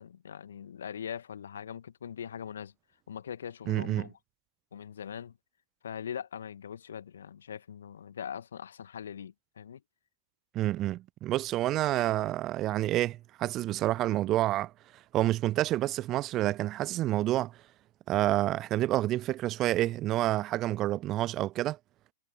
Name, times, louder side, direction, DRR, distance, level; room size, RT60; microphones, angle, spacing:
voice 1, 0.0-2.7 3.1-4.1 4.7-5.4 5.8-9.8, left 8 dB, 65° left, 1.9 m, -41 dB
voice 2, 3.7-4.1 10.5-14.7 15.1-17.5 18.1-21.8, right 15 dB, 30° right, 0.3 m, -28 dB
figure-of-eight pair, 100°, 0 cm